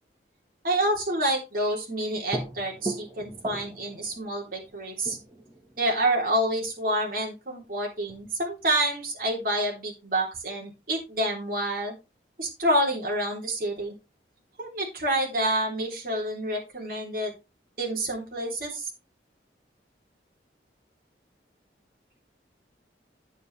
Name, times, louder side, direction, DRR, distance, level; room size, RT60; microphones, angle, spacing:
voice 1, 0.6-5.2 5.8-11.9 12.4-14.0 14.6-17.3 17.8-18.9, right 1 dB, 50° right, -2 dB, 3.3 m, -28 dB
sound 1, 1.7-1.8 2.3-7.2 7.6-7.7 8.1-9.1, right 2 dB, 20° right, 1.3 m, -40 dB
9.2 x 7.9 x 3.3 m, 0.27 s
head